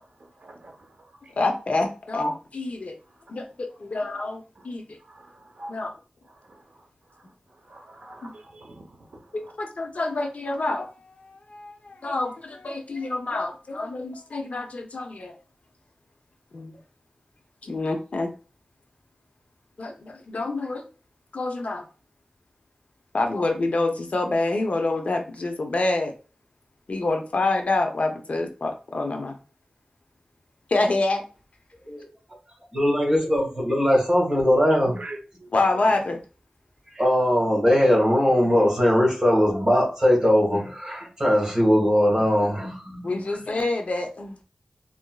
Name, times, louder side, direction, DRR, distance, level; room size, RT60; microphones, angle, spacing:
voice 1, 0.4-0.8 5.1-5.7 6.5-6.6 7.7-8.8 9.1-9.2 35.0-35.5, right 2 dB, 65° right, 0.7 m, -43 dB
voice 2, 1.4-3.0 3.3-4.8 5.7-5.9 8.2-8.3 9.3-15.3 16.5-16.8 17.6-18.3 19.8-20.8 21.3-21.9 23.1-26.1 26.9-29.4 30.7-31.2 35.5-36.2 43.0-44.4, left 2 dB, 60° left, 0.5 m, -27 dB
voice 3, 32.7-35.0 37.0-43.1, equal, 25° right, 1.7 m, -20 dB
3.8 x 2.5 x 2.2 m
wide cardioid pair, 90°, 3 cm